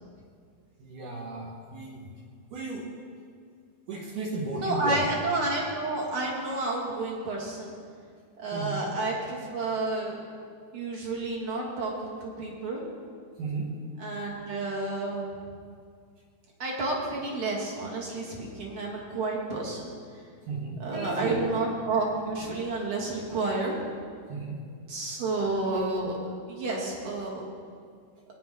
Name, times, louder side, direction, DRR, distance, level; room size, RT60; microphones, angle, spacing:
voice 1, 0.8-2.1 2.5-2.9 3.9-5.1 8.5-8.8 13.4-13.8 20.5-21.4 24.3-24.6, right 3 dB, 65° right, -2 dB, 2.5 m, -34 dB
voice 2, 4.6-7.7 8.4-10.2 10.7-12.8 14.0-15.3 16.6-19.8 20.8-23.7 24.9-27.4, right 2 dB, 45° right, -3 dB, 2.0 m, -30 dB
19.0 x 10.0 x 3.6 m, 2.1 s
omnidirectional pair, 4.6 m